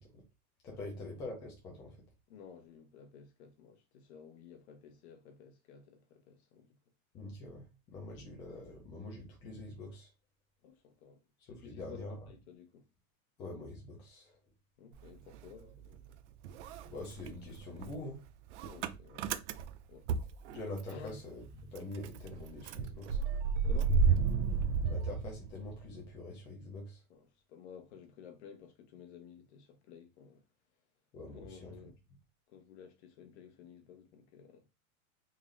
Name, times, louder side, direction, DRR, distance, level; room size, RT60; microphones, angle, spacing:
voice 1, 0.6-2.0 7.1-10.1 11.5-12.2 13.4-14.4 16.8-18.2 20.5-21.4 21.7-23.2 24.9-27.0 31.1-31.7, left 2 dB, 10° left, 0.4 m, -45 dB
voice 2, 2.3-6.7 10.6-11.2 11.5-12.9 14.8-16.2 18.6-19.3 19.9-20.1 20.9-21.2 23.6-24.0 27.1-30.4 31.3-32.0 32.5-34.7, left 6 dB, 50° left, 1.1 m, -53 dB
Motor vehicle (road) / Engine starting, 14.9-16.2 16.4-21.1 21.4-21.5 21.8-25.9, right 5 dB, 55° right, 0.5 m, -32 dB
3.8 x 2.6 x 3.2 m
supercardioid pair, 170°, 43 cm